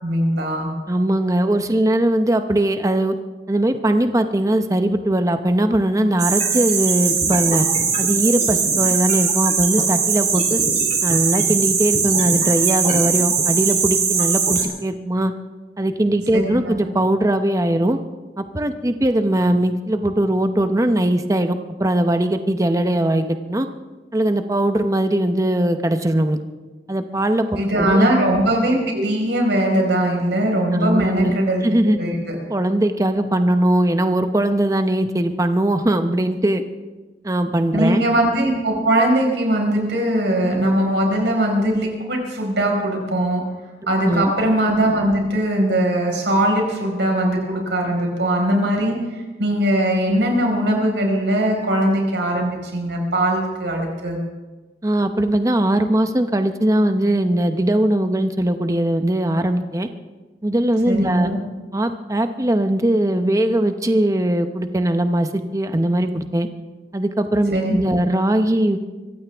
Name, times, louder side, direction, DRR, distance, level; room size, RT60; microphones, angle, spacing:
voice 1, 0.0-0.7 16.3-16.7 27.5-31.6 32.0-32.3 37.7-43.4 43.9-49.0 49.4-54.2 60.8-61.4 67.5-67.8, right 1 dB, 90° right, 1 dB, 4.8 m, -20 dB
voice 2, 0.9-3.1 3.5-7.7 8.0-10.6 11.0-15.3 15.8-18.0 18.4-23.7 24.1-26.4 26.9-28.1 30.7-31.4 31.6-32.0 32.5-36.6 37.2-38.0 44.0-44.3 54.8-59.9 60.4-61.3 61.7-66.5 66.9-68.8, right 1 dB, 20° right, 8 dB, 0.7 m, -20 dB
sound 1, 6.2-14.6, right 5 dB, 40° right, 2.9 m, -20 dB
25.0 x 15.0 x 3.5 m, 1.3 s
head